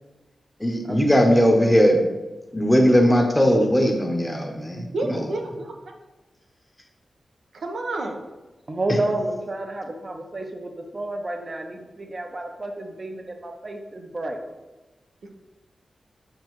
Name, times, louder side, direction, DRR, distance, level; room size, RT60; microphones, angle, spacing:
voice 1, 0.6-2.0 2.5-4.9, equal, 5° left, 2 dB, 0.7 m, -18 dB
voice 2, 4.9-5.9 7.5-8.2 15.2-15.3, right 2 dB, 90° right, 2 dB, 0.9 m, -30 dB
voice 3, 8.7-14.4, right 2 dB, 30° right, 4 dB, 0.6 m, -30 dB
7.6 x 6.1 x 3.0 m, 1.1 s
wide cardioid pair, 170°, 0 cm